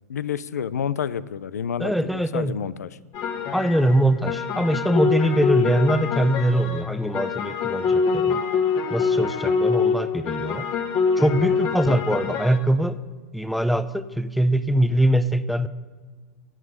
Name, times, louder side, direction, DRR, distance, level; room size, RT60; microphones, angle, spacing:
voice 1, 0.1-3.0 11.5-11.6, left 8 dB, 80° left, 18 dB, 0.6 m, -29 dB
voice 2, 1.8-2.6 3.5-8.4 8.9-10.7 11.2-13.0 13.3-15.7, right 1 dB, ahead, 14 dB, 0.7 m, -22 dB
sound 1, 3.1-12.6, left 5 dB, 40° left, 2.1 m, -24 dB
17.0 x 8.9 x 8.0 m, 1.4 s
hypercardioid pair, 100°, 9 cm